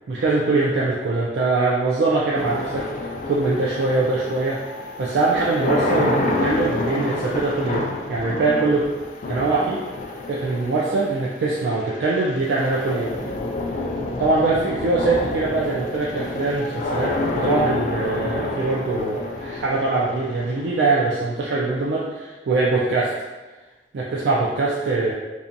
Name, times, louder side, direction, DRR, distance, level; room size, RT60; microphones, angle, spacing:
voice 1, 0.1-4.6 5.0-8.9 9.3-9.8 10.3-13.1 14.2-23.1 23.9-25.1, right 3 dB, 70° right, -5 dB, 0.3 m, -22 dB
sound 1, 2.3-21.4, left 2 dB, 45° left, 0.3 m, -28 dB
2.7 x 2.2 x 2.5 m, 1.2 s
head